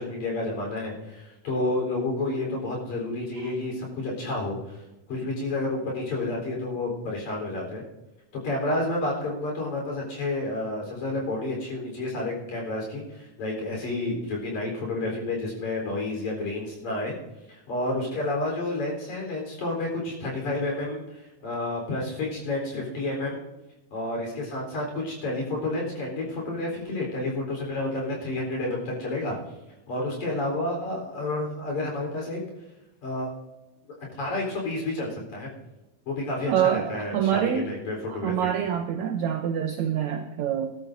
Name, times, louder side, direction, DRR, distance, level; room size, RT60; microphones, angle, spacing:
voice 1, 0.0-4.8 5.1-7.8 8.4-17.2 17.5-23.4 23.9-29.4 29.9-32.4 33.0-33.3 34.2-35.5 36.1-38.5, left 2 dB, 55° left, -1 dB, 5.3 m, -30 dB
voice 2, 36.5-37.7 38.1-40.8, right 9 dB, 80° right, 6 dB, 1.7 m, -26 dB
20.0 x 12.5 x 2.7 m, 1.0 s
omnidirectional pair, 4.1 m